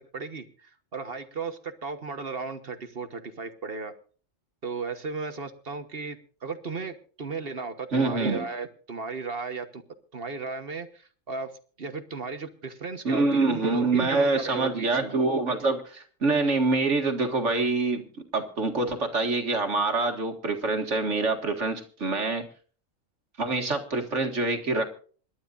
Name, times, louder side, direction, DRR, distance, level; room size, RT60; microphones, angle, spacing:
voice 1, 0.1-3.9 4.6-9.8 10.1-11.5 11.8-15.1, right 4 dB, 50° right, 9 dB, 1.4 m, -35 dB
voice 2, 7.9-8.4 13.0-18.0 18.3-22.4 23.4-24.9, right 3 dB, 65° right, 4 dB, 2.2 m, -25 dB
27.0 x 12.0 x 2.5 m, 0.41 s
omnidirectional pair, 1.3 m